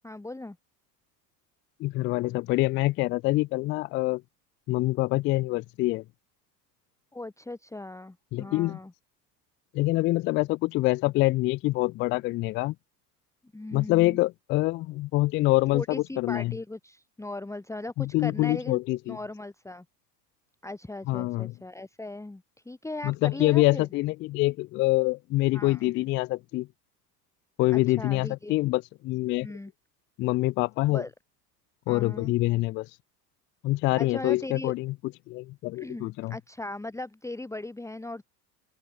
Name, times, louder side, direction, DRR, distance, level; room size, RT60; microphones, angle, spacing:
voice 1, 0.0-0.6 7.1-8.9 13.5-14.2 15.7-18.8 19.1-19.8 20.6-23.9 25.5-25.8 27.7-28.5 29.4-29.7 30.9-31.1 31.9-32.3 34.0-34.7 35.7-38.2, left 2 dB, 5° left, 1.6 m, -38 dB
voice 2, 1.8-4.2 4.7-6.0 8.3-8.8 9.7-12.7 13.7-16.5 18.0-19.2 21.1-21.5 23.0-26.7 27.6-29.5 30.2-31.0 31.9-32.9 33.6-34.9 35.3-36.4, left 19 dB, 25° left, 0.3 m, -25 dB
hypercardioid pair, 75°, 50 cm